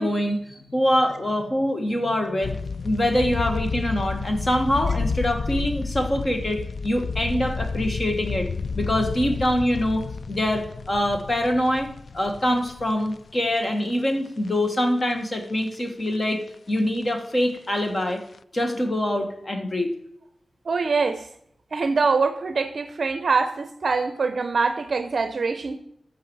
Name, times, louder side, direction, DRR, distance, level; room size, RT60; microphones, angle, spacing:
voice 1, 0.0-2.6 2.8-8.5 8.7-10.0 10.3-11.9 12.1-16.4 16.7-18.2 18.5-19.9, left 1 dB, 30° left, 4 dB, 1.5 m, -24 dB
sound 1, 2.4-13.9 14.3-14.4 14.9-15.7 16.0-16.2 16.5-17.8 18.1-18.4, left 4 dB, 55° left, 0.3 m, -31 dB
voice 2, 20.7-21.3 21.7-25.8, right 4 dB, 55° right, 9 dB, 0.6 m, -24 dB
14.5 x 5.9 x 4.7 m, 0.73 s
wide cardioid pair, 135°, 0 cm